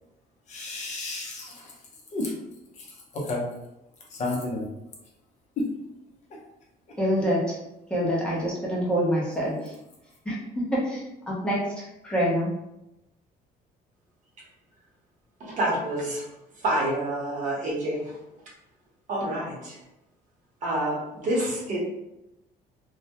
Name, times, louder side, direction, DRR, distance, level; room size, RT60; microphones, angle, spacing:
voice 1, 0.5-1.7 2.1-2.3 2.8-3.4 4.1-4.7 5.6-5.7, left 2 dB, 45° left, -3 dB, 0.6 m, -31 dB
voice 2, 7.0-7.6 7.9-9.7 10.3-12.5, equal, 5° left, -6 dB, 0.6 m, -26 dB
voice 3, 15.4-16.3 16.6-18.1 19.1-19.8 20.6-21.8, right 1 dB, 50° right, -4 dB, 0.8 m, -28 dB
2.2 x 2.0 x 2.8 m, 0.90 s
cardioid pair, 160°, 16 cm